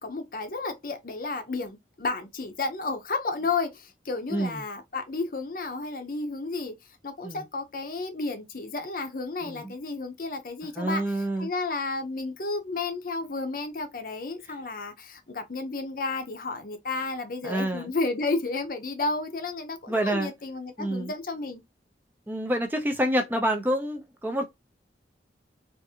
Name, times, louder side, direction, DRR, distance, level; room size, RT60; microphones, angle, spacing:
voice 1, 0.0-6.8 7.0-21.6, left 3 dB, 50° left, 0.6 m, -32 dB
voice 2, 4.3-4.6 7.2-7.5 9.4-9.7 10.8-11.5 17.4-17.9 19.9-20.3 20.8-21.1 22.3-24.5, right 1 dB, 10° right, 0.4 m, -27 dB
3.6 x 2.5 x 2.7 m
head